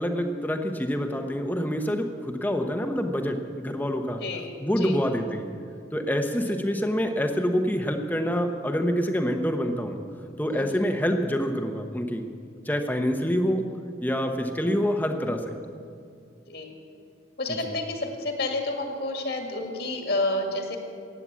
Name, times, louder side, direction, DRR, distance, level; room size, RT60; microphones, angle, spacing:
voice 1, 0.0-4.2 4.6-5.5 5.9-10.0 10.4-12.3 12.6-13.6 14.0-15.6 17.6-17.8, equal, 10° left, 5 dB, 1.0 m, -26 dB
voice 2, 10.5-10.8 16.5-16.7 17.4-20.8, left 2 dB, 60° left, 2 dB, 2.0 m, -30 dB
15.0 x 9.8 x 8.4 m, 2.3 s
head